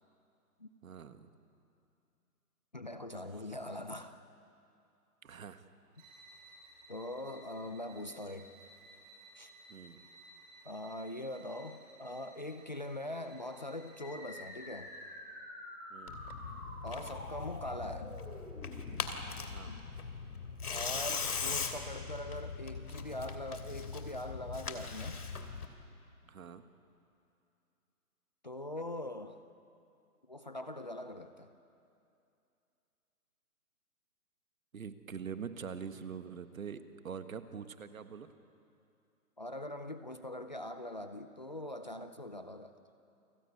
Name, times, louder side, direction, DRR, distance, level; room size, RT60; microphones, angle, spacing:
voice 1, 0.8-1.3 5.2-5.6 9.7-10.0 15.9-16.2 19.5-19.7 26.2-26.6 34.7-38.3, right 6 dB, 60° right, 10 dB, 1.7 m, -44 dB
voice 2, 2.7-4.2 6.9-8.5 9.4-9.5 10.7-14.9 16.8-18.2 19.7-19.8 20.6-25.2 28.4-29.4 30.3-31.5 39.4-42.7, left 1 dB, 30° left, 9 dB, 0.6 m, -42 dB
sound 1, 5.9-15.3, right 2 dB, 25° right, 7.5 m, -58 dB
sound 2, 14.0-19.0, left 1 dB, 10° left, 5.6 m, -48 dB
Tearing, 16.1-25.7, left 5 dB, 75° left, 3.1 m, -40 dB
29.0 x 19.5 x 9.3 m, 2.6 s
hypercardioid pair, 175°, 46 cm